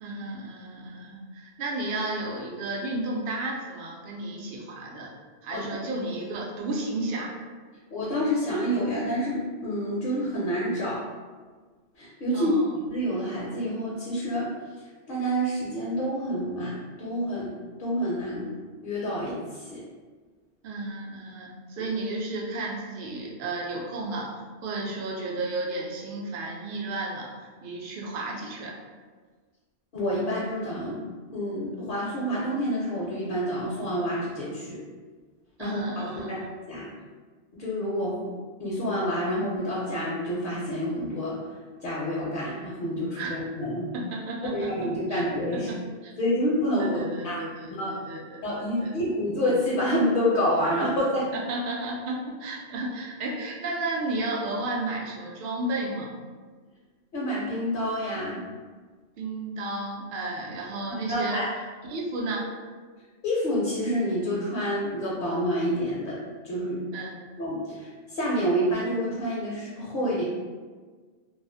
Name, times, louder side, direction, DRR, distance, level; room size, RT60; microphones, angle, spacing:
voice 1, 0.0-5.1 5.4-7.4 12.3-12.7 20.6-28.8 35.6-36.5 43.2-43.3 43.9-45.2 45.5-45.8 46.0-46.1 46.8-48.9 51.3-56.1 59.2-61.5 61.9-62.5 66.9-67.1, right 2 dB, 60° right, -2 dB, 0.6 m, -33 dB
voice 2, 7.9-11.0 12.0-12.5 12.9-14.5 15.1-18.5 18.8-19.8 29.9-31.0 31.3-34.8 35.6-36.9 37.5-38.2 38.6-41.4 41.8-43.9 44.5-45.7 46.2-47.4 47.7-47.9 48.4-51.3 57.1-58.4 61.1-61.5 63.2-66.8 67.4-70.2, equal, 60° left, -6 dB, 0.6 m, -28 dB
2.3 x 2.3 x 2.5 m, 1.5 s
omnidirectional pair, 1.2 m